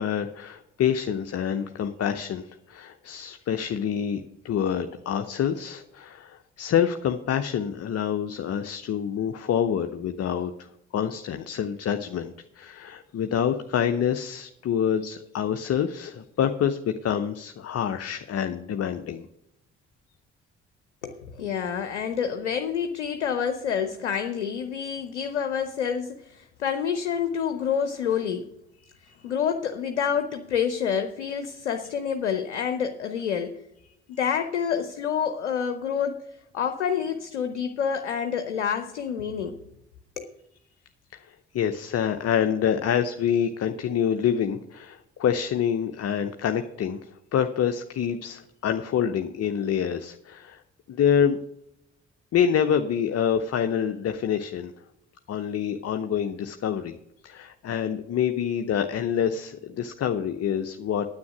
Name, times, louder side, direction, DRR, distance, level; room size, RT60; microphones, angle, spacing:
voice 1, 0.0-10.7 10.9-19.3 41.1-50.6 50.9-51.4 52.3-54.7 55.3-57.0 57.2-61.1, left 8 dB, 45° left, 7 dB, 0.8 m, -27 dB
voice 2, 21.0-28.5 29.2-33.6 34.2-36.2 36.5-39.6 40.2-40.3, left 7 dB, 85° left, 8 dB, 0.7 m, -28 dB
9.6 x 8.5 x 6.0 m, 0.80 s
figure-of-eight pair, 40°, 34 cm